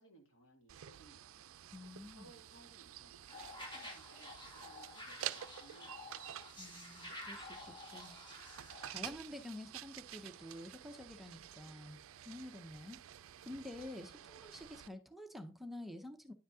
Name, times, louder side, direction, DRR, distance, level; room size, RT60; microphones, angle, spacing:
voice 1, 0.0-1.5 2.1-6.3, right 2 dB, 70° left, 2.5 m, -63 dB
sound 1, 0.7-14.9, right 12 dB, 80° right, 0.4 m, -50 dB
voice 2, 1.7-2.3 6.6-8.5 8.9-12.0 12.3-13.0 13.4-16.3, left 1 dB, ahead, 0.6 m, -49 dB
sound 2, 3.3-9.0, left 1 dB, 25° left, 2.2 m, -50 dB
10.0 x 7.8 x 2.7 m
head